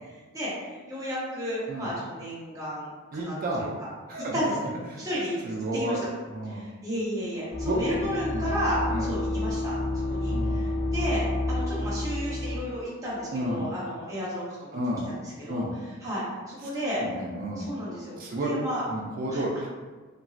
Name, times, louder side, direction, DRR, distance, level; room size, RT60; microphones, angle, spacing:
voice 1, 0.3-3.7 4.3-4.6 5.0-5.3 5.7-6.1 6.5-9.7 10.1-14.8 15.0-15.7 16.0-17.0 17.6-18.8 19.3-19.4, equal, 15° right, -9 dB, 0.8 m, -33 dB
voice 2, 3.1-3.7 4.1-4.4 4.9-5.0 5.4-6.6 7.6-7.8 8.3-8.5 8.9-9.1 10.3-10.6 13.3-13.7 14.7-15.1 15.5-15.7 17.0-17.7 18.2-18.5 18.9-19.7, right 1 dB, 40° right, -2 dB, 0.4 m, -31 dB
sound 1, 7.5-12.6, left 2 dB, 30° left, 1.0 m, -29 dB
2.9 x 2.6 x 2.3 m, 1.3 s
head